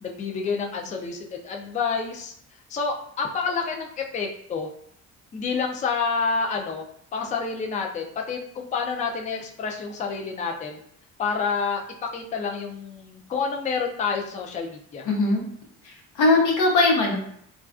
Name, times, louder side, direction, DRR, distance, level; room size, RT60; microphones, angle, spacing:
voice 1, 0.0-2.3 2.7-4.7 5.3-6.8 7.1-10.8 11.2-15.1, left 5 dB, 25° left, 1 dB, 0.3 m, -28 dB
voice 2, 15.0-15.4 15.8-17.2, left 2 dB, 85° left, -1 dB, 0.8 m, -20 dB
2.4 x 2.2 x 2.4 m, 0.68 s
cardioid pair, 90°, 30 cm